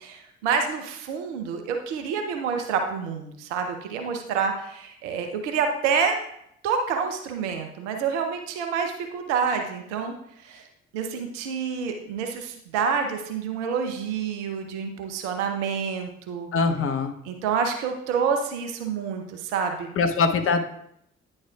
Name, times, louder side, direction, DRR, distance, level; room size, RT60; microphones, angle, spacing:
voice 1, 0.0-6.1 6.6-10.7 10.9-16.5 17.2-20.1, right 6 dB, 70° right, 5 dB, 0.8 m, -28 dB
voice 2, 16.5-17.1 20.0-20.6, left 4 dB, 35° left, 6 dB, 0.8 m, -22 dB
9.6 x 6.4 x 2.3 m, 0.73 s
figure-of-eight pair, 45°, 36 cm